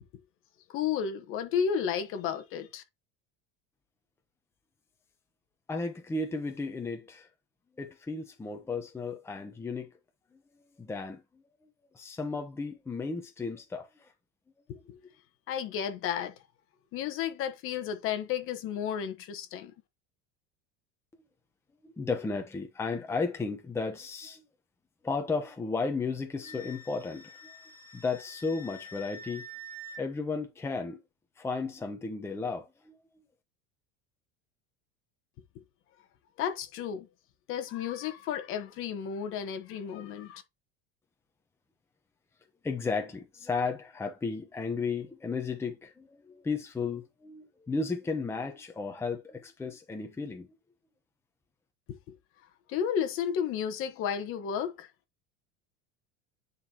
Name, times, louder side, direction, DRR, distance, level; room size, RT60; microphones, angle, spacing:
voice 1, 0.7-2.8 14.7-14.8 15.5-16.3 16.9-19.7 36.4-37.1 37.5-40.4 51.9-52.1 52.7-54.9, left 8 dB, 45° left, 1.2 m, -32 dB
voice 2, 5.7-7.3 7.8-9.9 10.3-10.4 10.8-11.4 11.9-14.1 14.9-15.0 21.8-24.4 25.0-27.5 27.9-29.4 30.0-31.0 31.4-32.9 42.6-50.5, left 4 dB, 10° left, 0.9 m, -34 dB
Wind instrument woodwind instrument, 26.4-30.0, equal, 10° right, 1.6 m, -46 dB
9.6 x 4.0 x 2.9 m
cardioid pair, 150°, 29 cm